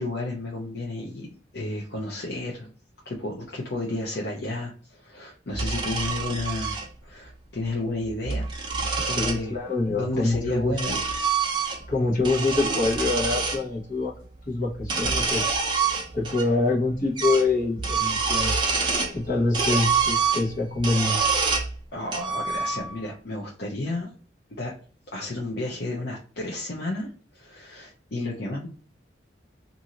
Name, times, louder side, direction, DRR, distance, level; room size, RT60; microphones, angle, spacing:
voice 1, 0.0-2.7 3.0-9.6 9.9-11.0 21.9-24.1 24.6-24.7 25.1-28.7, left 2 dB, 60° left, -3 dB, 0.7 m, -32 dB
sound 1, 5.5-6.9 8.1-9.4 10.3-11.9 12.2-13.6 14.8-16.5 16.7-16.8 17.2-17.5 17.8-19.2 19.5-21.7 22.1-23.1, right 5 dB, 25° right, 0.6 m, -26 dB
voice 2, 9.2-10.7 11.9-14.1 14.5-15.4 16.1-18.5 19.1-21.2, left 3 dB, 45° left, -3 dB, 1.1 m, -25 dB
2.6 x 2.6 x 2.8 m, 0.42 s
head